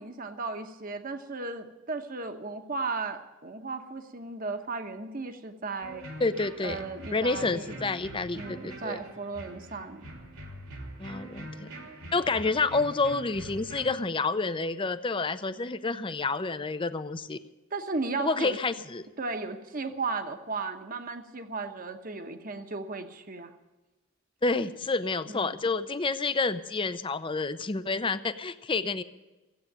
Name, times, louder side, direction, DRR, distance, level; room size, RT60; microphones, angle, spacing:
voice 1, 0.0-6.0 6.6-7.8 8.3-10.1 17.7-18.6 19.2-23.5 25.3-25.5, right 3 dB, 40° right, 7 dB, 1.1 m, -35 dB
sound 1, 5.8-13.9, right 1 dB, 75° right, 3.0 m, -44 dB
voice 2, 6.2-6.8 7.1-9.0 11.0-11.7 12.1-17.4 18.2-19.1 24.4-29.0, left 3 dB, 25° left, 12 dB, 0.5 m, -29 dB
15.5 x 8.5 x 9.0 m, 1.1 s
head